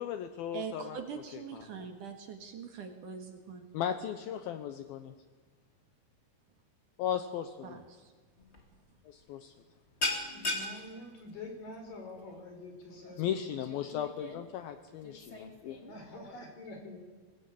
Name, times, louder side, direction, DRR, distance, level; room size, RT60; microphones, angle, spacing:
voice 1, 0.0-1.0 1.3-1.9 3.7-5.1 7.0-7.8 9.1-9.5 13.2-15.8, left 9 dB, 75° left, 9 dB, 2.5 m, -36 dB
voice 2, 0.5-3.7 7.6-8.1, right 6 dB, 60° right, 5 dB, 3.0 m, -43 dB
sound 1, 8.4-8.6 8.9-9.2 9.5-16.4, left 1 dB, 20° left, 2.2 m, -39 dB
voice 3, 10.3-14.1 15.8-17.0, left 2 dB, 55° left, 3 dB, 5.8 m, -47 dB
23.5 x 20.0 x 8.5 m, 1.4 s
omnidirectional pair, 4.7 m